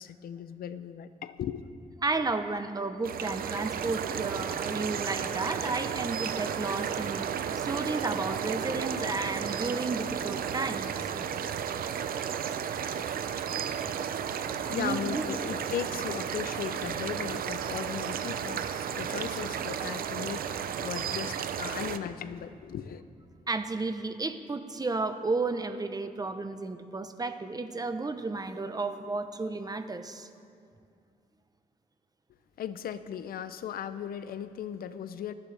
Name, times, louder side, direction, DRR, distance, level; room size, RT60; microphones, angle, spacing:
voice 1, 0.0-1.7 14.7-23.0 32.6-35.3, left 9 dB, 90° left, 12 dB, 0.6 m, -37 dB
voice 2, 2.0-10.9 14.8-15.2 23.5-30.3, right 3 dB, 25° right, 9 dB, 0.9 m, -33 dB
sound 1, 3.0-22.0, right 8 dB, 85° right, 0.6 m, -33 dB
28.5 x 10.5 x 3.4 m, 2.3 s
cardioid pair, 90°, 15 cm